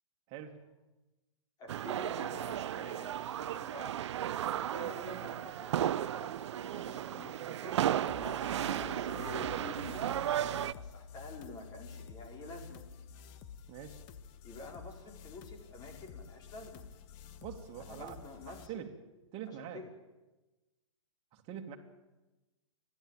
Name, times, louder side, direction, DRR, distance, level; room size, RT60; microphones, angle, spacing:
voice 1, 1.6-7.8 8.2-12.8 14.4-16.9 17.8-18.8 19.5-19.9, left 2 dB, 25° left, 3 dB, 4.5 m, -49 dB
sound 1, 1.7-10.7, right 11 dB, 65° right, 0.7 m, -34 dB
sound 2, 8.1-18.7, left 6 dB, 40° left, 1.5 m, -49 dB
voice 2, 13.7-14.0 17.4-18.2 18.4-18.9 19.3-19.8 21.3-21.8, right 9 dB, 35° right, 4 dB, 2.5 m, -44 dB
29.5 x 12.0 x 9.0 m, 1.1 s
hypercardioid pair, 130°, 16 cm